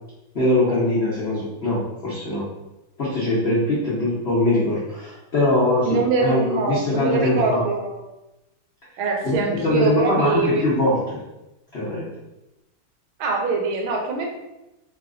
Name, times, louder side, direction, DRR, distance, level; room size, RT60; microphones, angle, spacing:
voice 1, 0.3-2.5 3.0-7.6 9.2-11.2 11.7-12.1, left 1 dB, 65° left, -9 dB, 0.6 m, -22 dB
voice 2, 5.8-8.0 9.0-10.6 13.2-14.5, right 4 dB, 75° right, 2 dB, 1.3 m, -23 dB
4.0 x 2.8 x 2.4 m, 0.96 s
omnidirectional pair, 2.4 m